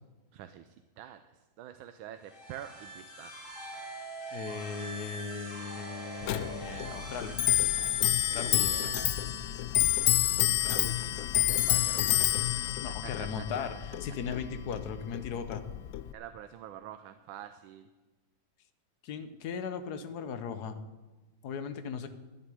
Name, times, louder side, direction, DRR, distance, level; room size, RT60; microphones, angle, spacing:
voice 1, 0.3-1.2 1.6-3.3 8.3-9.2 10.6-12.7 13.0-13.6 16.1-17.9, right 11 dB, 85° right, 9 dB, 1.5 m, -47 dB
Logotype Nostalgic, 2.2-9.8, right 1 dB, 25° left, 5.1 m, -43 dB
voice 2, 4.3-7.4 8.3-8.9 12.8-15.6 19.0-20.8 21.4-22.1, left 6 dB, 60° left, 10 dB, 1.4 m, -37 dB
Clock, 6.2-16.1, left 13 dB, 85° left, 0.7 m, -29 dB
11.5 x 8.5 x 9.9 m, 1.2 s
omnidirectional pair, 2.1 m